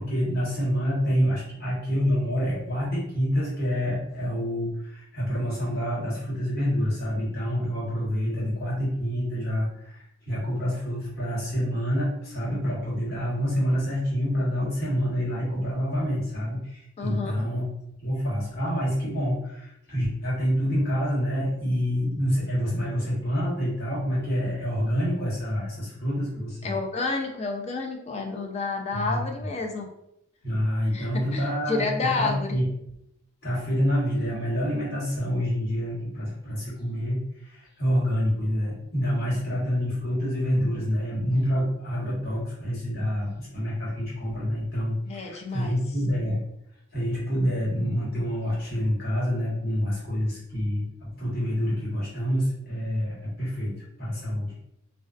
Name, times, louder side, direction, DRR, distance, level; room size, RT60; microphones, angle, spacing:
voice 1, 0.0-17.7 18.0-26.8 28.9-29.2 30.4-31.8 32.2-32.6 33.4-46.4 46.9-54.6, equal, 55° left, -7 dB, 1.2 m, -27 dB
voice 2, 17.0-17.5 26.6-29.9 30.9-32.6 39.3-39.4 45.1-45.8, left 3 dB, 35° left, 2 dB, 0.4 m, -30 dB
2.3 x 2.3 x 2.4 m, 0.77 s
head